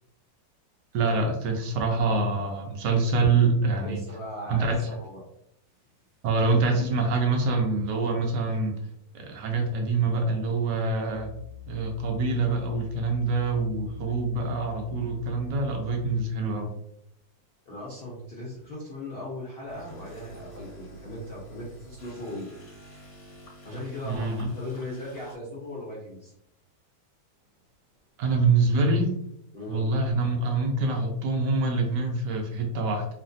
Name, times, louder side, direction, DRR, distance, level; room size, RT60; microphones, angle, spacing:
voice 1, 0.9-4.0 4.5-4.8 6.2-8.8 9.1-11.3 11.7-16.7 24.0-24.5 28.2-29.2 29.7-33.1, right 3 dB, 70° right, 2 dB, 1.1 m, -25 dB
voice 2, 3.7-5.2 17.7-22.5 23.6-26.3 29.5-29.8, left 1 dB, 85° left, -5 dB, 0.5 m, -38 dB
sound 1, 11.1-16.4, left 13 dB, 35° right, 0.9 m, -44 dB
sound 2, 19.7-25.4, right 2 dB, 35° left, 1.2 m, -48 dB
3.1 x 2.2 x 2.5 m, 0.75 s
omnidirectional pair, 2.1 m